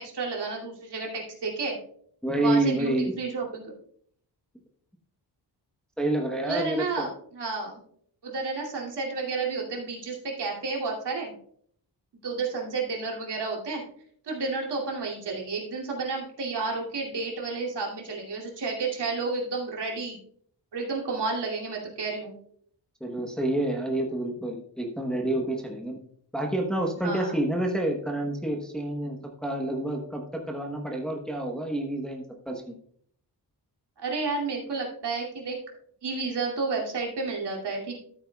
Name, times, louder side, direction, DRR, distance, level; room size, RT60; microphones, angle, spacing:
voice 1, 0.0-1.8 2.4-3.7 6.4-7.8 8.2-11.3 12.2-13.8 14.2-20.2 20.7-22.3 27.0-27.3 34.0-35.6 36.0-38.0, right 4 dB, 70° right, -2 dB, 2.6 m, -31 dB
voice 2, 2.2-3.2 6.0-7.1 23.0-26.0 26.3-32.8, right 1 dB, ahead, 1 dB, 1.0 m, -28 dB
13.5 x 8.6 x 2.3 m, 0.63 s
wide cardioid pair, 170°, 42 cm